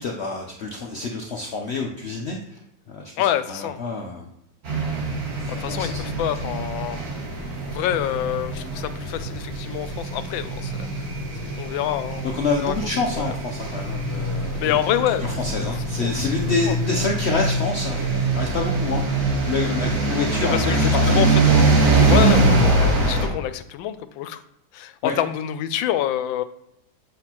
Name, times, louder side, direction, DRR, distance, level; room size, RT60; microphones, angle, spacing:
voice 1, 0.0-2.6 2.9-3.1 3.5-4.3 5.4-6.0 12.3-14.8 15.2-19.2 19.5-21.6 25.0-25.2, left 3 dB, 70° left, 2 dB, 0.6 m, -27 dB
voice 2, 3.2-3.8 5.5-7.0 7.7-11.1 11.4-12.3 12.6-12.7 13.2-13.3 14.6-15.2 15.7-16.1 16.7-16.8 20.4-21.7 22.1-24.4 24.7-26.4, left 11 dB, 90° left, 12 dB, 1.3 m, -27 dB
sound 1, 4.6-23.3, right 2 dB, 50° right, 2.2 m, -23 dB
7.9 x 6.2 x 2.9 m, 0.82 s
omnidirectional pair, 2.0 m